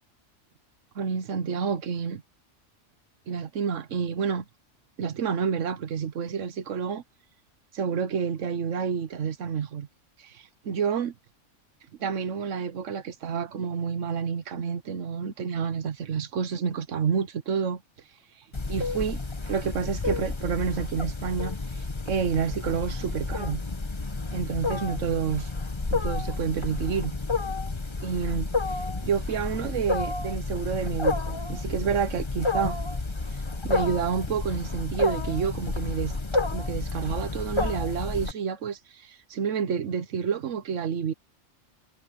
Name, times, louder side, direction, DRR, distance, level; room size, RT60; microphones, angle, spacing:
voice 1, 0.9-2.2 3.3-4.4 5.0-7.0 7.7-9.9 10.2-11.1 12.0-17.8 18.4-19.2 19.5-23.6 24.3-25.5 25.9-27.1 28.0-28.5 29.0-32.8 33.3-36.2 36.5-41.1, right 6 dB, 75° right, 1.3 m, -29 dB
Wild animals, 18.5-38.3, left 3 dB, 25° left, 1.1 m, -30 dB
omnidirectional pair, 1.3 m